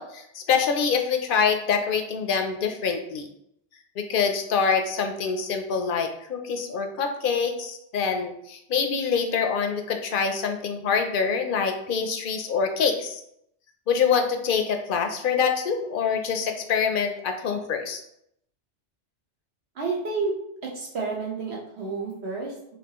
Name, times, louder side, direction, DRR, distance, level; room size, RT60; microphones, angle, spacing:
voice 1, 0.0-3.3 4.0-13.2 13.9-18.0, left 6 dB, 60° left, 5 dB, 0.6 m, -25 dB
voice 2, 19.7-20.4 20.6-22.8, right 4 dB, 70° right, -1 dB, 1.3 m, -30 dB
5.1 x 2.9 x 2.9 m, 0.76 s
omnidirectional pair, 1.1 m